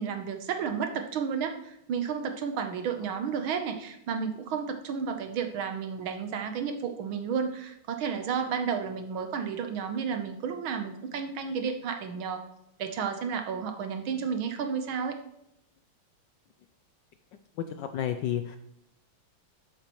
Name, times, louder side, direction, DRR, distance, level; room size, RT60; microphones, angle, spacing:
voice 1, 0.0-12.4 12.8-15.2, right 6 dB, 70° right, 6 dB, 1.7 m, -32 dB
voice 2, 17.6-18.6, left 10 dB, 75° left, 8 dB, 1.1 m, -31 dB
11.0 x 8.9 x 3.1 m, 0.80 s
omnidirectional pair, 2.4 m